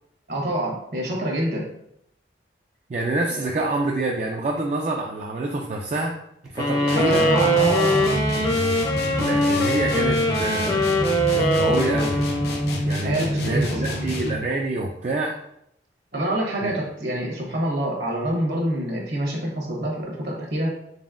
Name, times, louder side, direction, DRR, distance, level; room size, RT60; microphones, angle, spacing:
voice 1, 0.3-1.7 3.3-3.5 6.9-8.2 13.0-13.9 16.1-20.7, right 1 dB, 70° right, -2 dB, 1.1 m, -26 dB
voice 2, 2.9-6.2 6.5-7.2 9.2-11.0 11.3-12.2 12.8-15.4 16.6-16.7, right 2 dB, 40° right, 0 dB, 0.3 m, -27 dB
sound 1, 6.6-13.0, equal, 20° left, 0.5 m, -22 dB
sound 2, 6.9-14.5, equal, 60° left, 0.6 m, -28 dB
4.0 x 3.6 x 2.4 m, 0.76 s
head